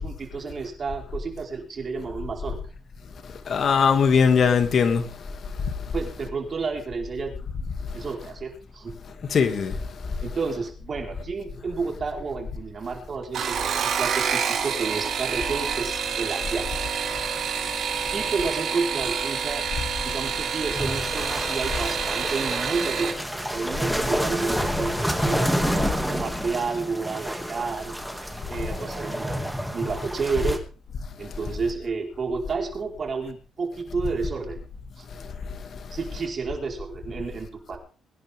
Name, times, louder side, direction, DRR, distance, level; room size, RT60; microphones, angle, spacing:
voice 1, 0.0-2.6 5.9-7.4 7.9-8.9 10.2-16.7 18.1-19.7 20.0-27.9 28.5-30.6 31.2-34.6 35.0-35.1 35.9-37.8, right 4 dB, 45° right, 4.8 m, -31 dB
voice 2, 3.5-5.1 9.3-9.8, left 6 dB, 55° left, 2.6 m, -20 dB
sound 1, 13.2-23.2 24.4-24.9 25.3-25.7 26.0-26.1, right 6 dB, 65° right, 5.2 m, -28 dB
sound 2, 20.7-30.6, equal, ahead, 2.5 m, -29 dB
22.5 x 10.5 x 3.7 m
cardioid pair, 90°, 0 cm